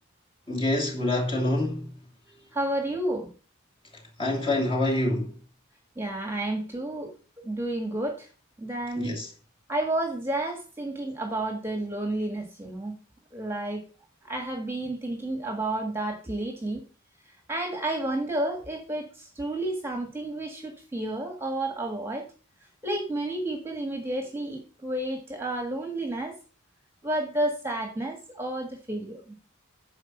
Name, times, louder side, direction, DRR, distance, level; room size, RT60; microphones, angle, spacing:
voice 1, 0.5-1.9 4.2-5.3 9.0-9.3, left 1 dB, 25° left, 2.8 m, -26 dB
voice 2, 2.5-3.3 5.9-7.1 7.4-8.3 8.6-9.2 9.7-12.9 13.3-13.8 14.2-16.8 17.5-22.2 22.8-26.4 27.0-29.3, right 1 dB, 10° right, 1.6 m, -31 dB
9.8 x 6.1 x 5.5 m
head